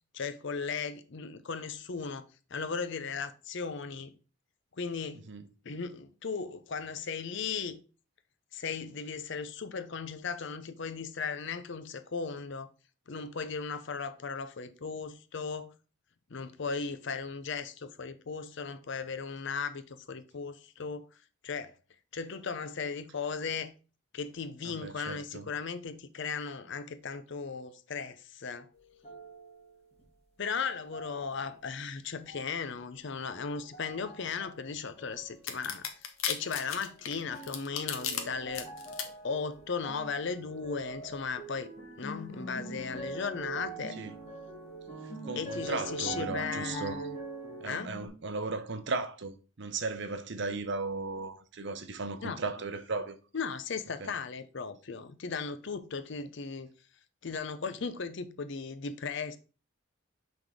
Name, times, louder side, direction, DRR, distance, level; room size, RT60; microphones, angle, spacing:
voice 1, 0.1-4.1 4.8-5.2 5.6-7.8 8.5-12.7 13.1-15.7 16.3-21.1 21.4-21.7 22.1-23.7 24.1-28.7 30.4-35.8 36.3-38.7 39.2-41.7 42.0-44.0 45.4-47.2 47.6-47.9 52.2-52.4 53.3-56.7 57.2-59.4, left 5 dB, 55° left, 0.6 m, -36 dB
voice 2, 24.6-25.5 44.0-44.1 45.2-47.0 47.6-53.2 54.0-54.1, right 3 dB, 55° right, 0.7 m, -36 dB
sound 1, 29.0-30.0 30.6-31.6 32.3-32.9 33.3-34.6 35.0-35.8 36.4-36.9 37.3-48.1, right 2 dB, 25° left, 1.7 m, -44 dB
sound 2, 35.5-38.2 38.5-39.0, left 8 dB, 70° left, 0.9 m, -34 dB
6.0 x 3.5 x 4.8 m
head